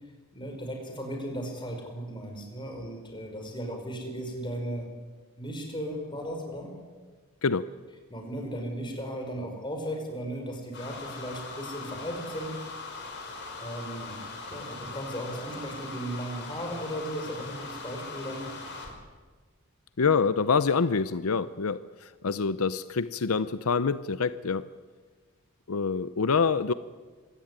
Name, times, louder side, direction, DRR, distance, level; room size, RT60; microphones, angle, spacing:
voice 1, 0.3-4.9 5.4-6.8 8.1-12.6 13.6-14.2 14.5-18.5, equal, 20° left, 3 dB, 5.2 m, -36 dB
voice 2, 7.4-7.7 20.0-24.7 25.7-26.7, left 5 dB, 80° left, 14 dB, 0.7 m, -26 dB
sound 1, 10.7-19.0, left 3 dB, 55° left, 5.1 m, -40 dB
25.5 x 16.5 x 9.7 m, 1.4 s
head